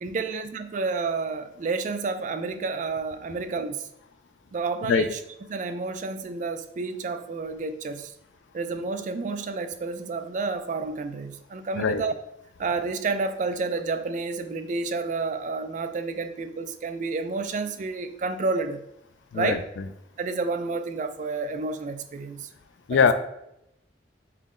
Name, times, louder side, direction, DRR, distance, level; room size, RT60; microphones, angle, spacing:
voice 1, 0.0-3.9 4.5-5.2 5.5-8.1 8.5-12.1 12.6-18.8 19.3-19.6 20.2-22.5 22.9-23.1, right 4 dB, 45° right, 9 dB, 0.3 m, -30 dB
voice 2, 4.9-5.1 11.8-12.0 19.3-19.6 22.9-23.1, left 6 dB, 85° left, 10 dB, 0.4 m, -21 dB
5.5 x 2.1 x 3.6 m, 0.82 s
head